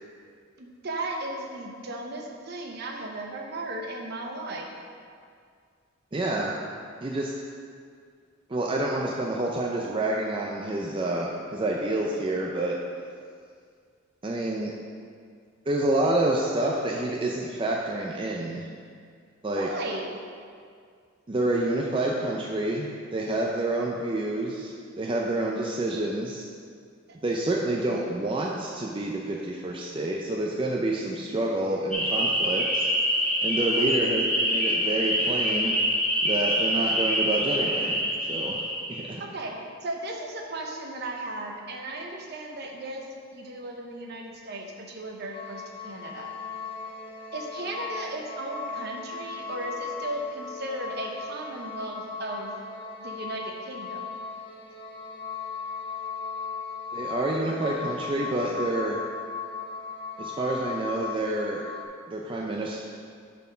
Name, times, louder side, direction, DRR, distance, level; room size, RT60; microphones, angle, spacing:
voice 1, 0.6-4.7 19.5-20.1 33.7-33.8 39.2-39.5 39.8-43.0 43.3-46.3 47.3-52.5 53.0-54.0, right 2 dB, 55° right, 1 dB, 0.9 m, -36 dB
voice 2, 6.1-6.6 7.0-7.3 8.5-12.7 14.2-14.7 15.7-18.7 19.4-19.7 21.3-26.4 27.2-32.9 33.4-35.7 36.2-38.0 38.3-38.6 38.9-39.2 56.9-59.0 60.2-61.6 62.1-62.8, right 2 dB, 25° right, -1 dB, 0.4 m, -28 dB
sound 1, 31.9-39.1, equal, 5° left, 1.3 m, -25 dB
sound 2, 45.3-61.8, left 5 dB, 25° left, 0.6 m, -37 dB
7.0 x 4.3 x 5.5 m, 2.2 s
head